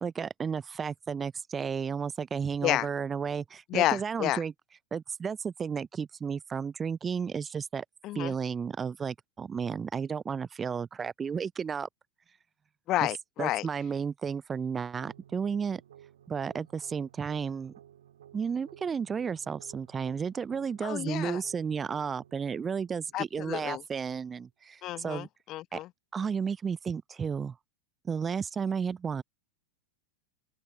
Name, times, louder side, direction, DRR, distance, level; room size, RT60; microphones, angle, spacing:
voice 1, 0.0-4.5 4.9-7.8 8.1-11.9 13.4-15.8 16.3-17.7 18.3-25.3 25.7-25.8 26.1-27.6 28.0-29.2, right 6 dB, 20° right, 0.7 m, -33 dB
voice 2, 3.7-4.4 8.0-8.3 12.9-13.7 20.8-21.4 23.1-23.8 24.8-25.9, left 15 dB, 35° left, 1.0 m, -30 dB
sound 1, 15.0-24.0, right 10 dB, 60° right, 3.7 m, -56 dB
open air
figure-of-eight pair, 90°, 0 cm